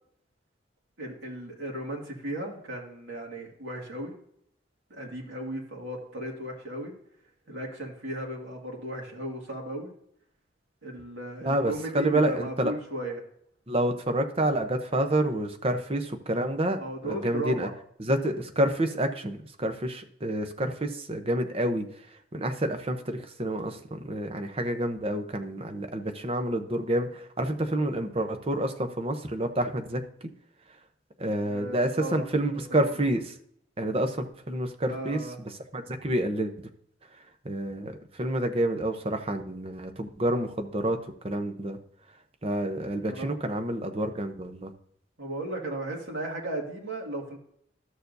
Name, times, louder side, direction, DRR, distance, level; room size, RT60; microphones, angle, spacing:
voice 1, 1.0-4.1 4.9-6.9 7.5-9.9 10.8-13.2 16.8-17.7 31.5-32.8 34.9-35.4 43.1-43.3 45.2-47.4, right 1 dB, 85° right, -1 dB, 2.2 m, -36 dB
voice 2, 11.4-12.7 13.7-16.8 17.0-17.7 18.0-30.0 31.2-33.4 33.8-35.2 35.7-36.7 37.4-41.8 42.4-44.7, right 1 dB, 30° right, 6 dB, 0.8 m, -28 dB
13.0 x 6.8 x 2.7 m, 0.68 s
head